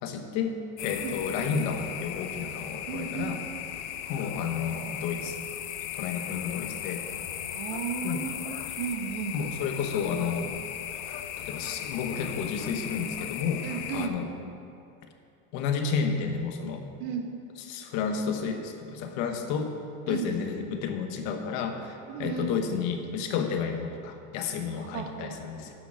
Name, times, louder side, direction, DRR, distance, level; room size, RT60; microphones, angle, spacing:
voice 1, 0.0-3.4 4.1-5.4 6.0-7.0 8.0-8.2 9.3-10.6 11.4-14.3 15.5-16.8 17.6-19.7 20.1-25.7, left 6 dB, 55° left, 5 dB, 1.1 m, -31 dB
sound 1, 0.8-14.1, left 10 dB, 85° left, 0.7 m, -37 dB
voice 2, 2.9-3.4 7.3-9.4 13.6-14.1 17.0-17.3 20.1-20.3 22.1-22.5 24.7-25.3, right 6 dB, 70° right, 3 dB, 1.5 m, -34 dB
9.4 x 6.5 x 6.2 m, 2.6 s
supercardioid pair, 145°, 34 cm